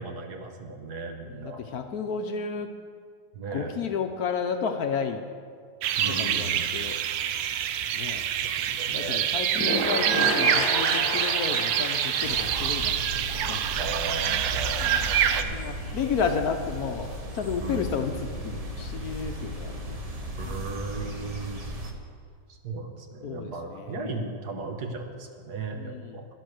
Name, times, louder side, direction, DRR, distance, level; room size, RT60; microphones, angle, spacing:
voice 1, 0.0-1.6 3.3-3.8 6.0-6.6 8.6-9.3 13.8-15.6 17.6-18.0 20.4-21.7 22.5-26.3, right 3 dB, 65° right, 4 dB, 1.7 m, -36 dB
voice 2, 1.3-2.7 3.5-5.2 6.1-7.0 7.9-8.2 8.9-13.2 13.5-13.6 14.3-14.4 14.8-15.1 15.5-17.1 17.3-20.0 20.4-20.7 23.2-24.2 25.8-26.2, left 6 dB, 65° left, 6 dB, 1.1 m, -32 dB
sound 1, 5.8-15.4, right 9 dB, 90° right, 1.4 m, -26 dB
sound 2, 9.6-14.2 14.5-14.6 14.8-14.9, left 1 dB, 5° right, 2.0 m, -31 dB
sound 3, 12.2-21.9, equal, 25° right, 0.8 m, -36 dB
11.0 x 11.0 x 6.4 m, 2.1 s
omnidirectional pair, 2.0 m